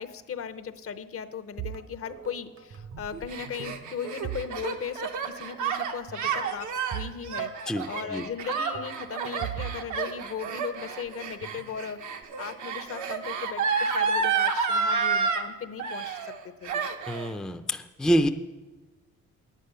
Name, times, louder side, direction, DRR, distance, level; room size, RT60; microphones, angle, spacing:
voice 1, 0.0-12.0 12.4-16.3 16.6-16.9, left 7 dB, 50° left, 10 dB, 0.7 m, -37 dB
sound 1, 1.6-3.1 3.4-5.0 5.2-5.5 6.1-7.2 7.5-7.6 8.7-10.8 11.4-12.2, right 11 dB, 55° right, 0.8 m, -40 dB
Gasp, 3.0-15.4 15.8-16.4 16.6-17.3, right 5 dB, 75° right, 1.0 m, -30 dB
voice 2, 17.1-18.3, equal, ahead, 7 dB, 0.4 m, -26 dB
10.0 x 8.3 x 5.5 m, 1.2 s
cardioid pair, 90°, 30 cm